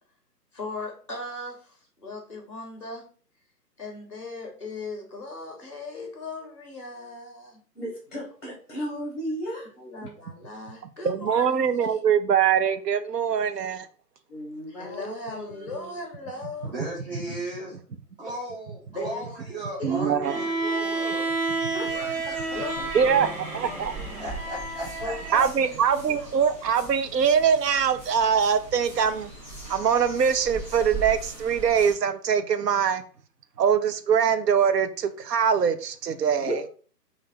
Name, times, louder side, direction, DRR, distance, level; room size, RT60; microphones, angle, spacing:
voice 1, 0.5-3.1 3.8-7.6 9.8-11.5 11.9-12.0 14.7-16.9 18.9-19.3 19.8-20.9 22.5-23.3 23.7-24.3 25.0-25.8, left 2 dB, 20° left, 0.5 m, -38 dB
voice 2, 7.7-9.7 14.3-15.9 21.7-22.7 36.2-36.7, equal, ahead, 0.9 m, -35 dB
voice 3, 11.0-13.9 19.8-20.4 22.9-23.3 23.5-23.9 25.3-29.3 29.7-33.0 33.6-36.5, right 7 dB, 75° right, 0.6 m, -23 dB
voice 4, 16.6-17.8 18.2-21.3 22.3-22.4 24.1-25.5, right 1 dB, 35° right, 0.8 m, -36 dB
Bowed string instrument, 20.2-25.4, right 3 dB, 55° right, 1.0 m, -30 dB
sound 1, 21.8-31.9, right 3 dB, 20° right, 1.4 m, -41 dB
3.2 x 2.6 x 2.7 m
figure-of-eight pair, 145°, 49 cm